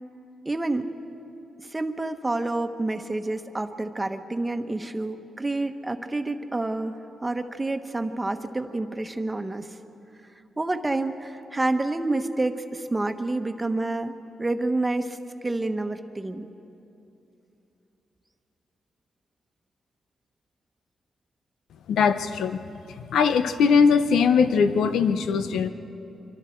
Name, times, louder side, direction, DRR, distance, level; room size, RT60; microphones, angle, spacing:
voice 1, 0.4-0.9 1.7-9.7 10.6-15.2 15.4-16.5, right 2 dB, 20° right, 7 dB, 1.2 m, -28 dB
voice 2, 21.9-22.6 23.1-25.7, left 6 dB, 90° left, 10 dB, 0.8 m, -20 dB
26.0 x 24.0 x 4.6 m, 2.8 s
cardioid pair, 85°, 0 cm